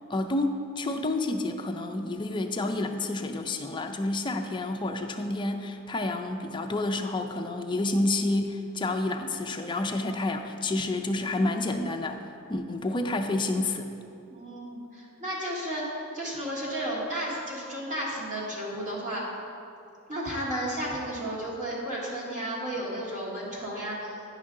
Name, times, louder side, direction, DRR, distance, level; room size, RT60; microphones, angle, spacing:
voice 1, 0.1-12.2 12.5-13.9, left 2 dB, 20° left, 4 dB, 0.4 m, -29 dB
voice 2, 14.3-19.2 20.1-24.2, right 1 dB, 35° right, -5 dB, 1.6 m, -33 dB
9.8 x 5.3 x 3.7 m, 2.7 s
head